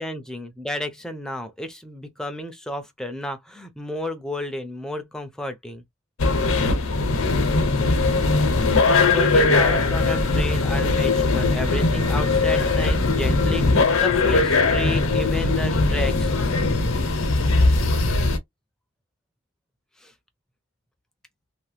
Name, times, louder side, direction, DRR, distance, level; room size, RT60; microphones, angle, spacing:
voice 1, 0.0-5.8 9.0-16.3 20.0-20.1, left 1 dB, 5° left, 0.5 m, -32 dB
sound 1, 6.2-18.4, left 3 dB, 85° left, 0.7 m, -20 dB
2.8 x 2.1 x 3.2 m
head